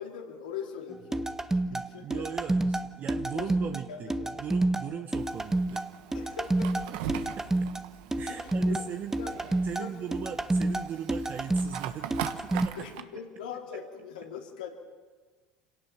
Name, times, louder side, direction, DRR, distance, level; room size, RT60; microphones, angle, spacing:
voice 1, 0.0-2.2 3.3-4.4 4.9-5.0 6.1-6.7 8.3-8.8 9.2-9.3 9.7-10.1 12.8-14.7, left 7 dB, 85° left, 1 dB, 3.4 m, -42 dB
sound 1, 1.1-12.7, right 2 dB, 10° right, 1.0 m, -29 dB
voice 2, 1.7-5.8 6.9-7.7 8.2-9.2 9.6-12.9, right 8 dB, 45° right, 7 dB, 1.0 m, -39 dB
Fire, 5.2-13.0, right 11 dB, 70° right, 1.2 m, -41 dB
26.0 x 18.0 x 6.0 m, 1.4 s
hypercardioid pair, 85°, 4 cm